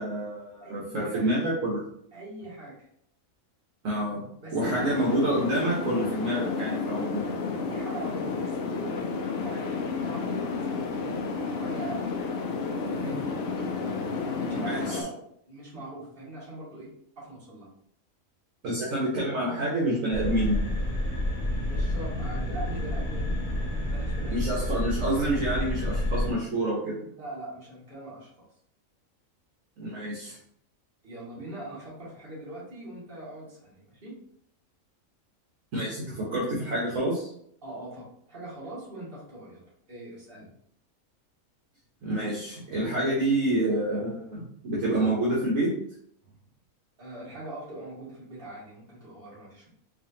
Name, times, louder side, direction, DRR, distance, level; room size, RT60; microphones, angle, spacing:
voice 1, 0.0-1.8 3.8-4.2 4.5-7.3 14.6-15.0 18.6-20.6 24.3-27.1 29.8-30.4 35.7-37.3 42.0-45.8, right 1 dB, 70° right, -6 dB, 1.3 m, -28 dB
voice 2, 0.6-1.3 2.1-2.9 4.4-4.7 7.7-13.4 14.2-16.9 17.2-17.7 21.6-23.4 23.8-24.5 27.2-28.5 31.0-34.2 37.6-40.5 47.0-49.7, right 1 dB, 40° right, -7 dB, 1.9 m, -42 dB
sound 1, 4.6-15.0, left 4 dB, 65° left, 0.7 m, -31 dB
sound 2, 20.1-26.3, left 1 dB, 40° left, 1.0 m, -29 dB
4.7 x 2.6 x 2.8 m, 0.68 s
omnidirectional pair, 1.4 m